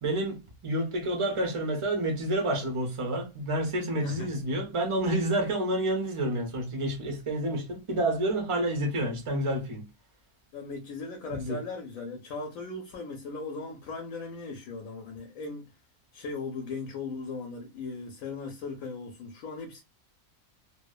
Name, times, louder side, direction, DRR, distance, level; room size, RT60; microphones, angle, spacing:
voice 1, 0.0-9.8 11.3-11.6, right 1 dB, 50° right, 0.3 m, -29 dB
voice 2, 10.5-15.7 16.1-19.8, left 4 dB, 70° left, 1.0 m, -38 dB
2.7 x 2.1 x 2.3 m
omnidirectional pair, 1.6 m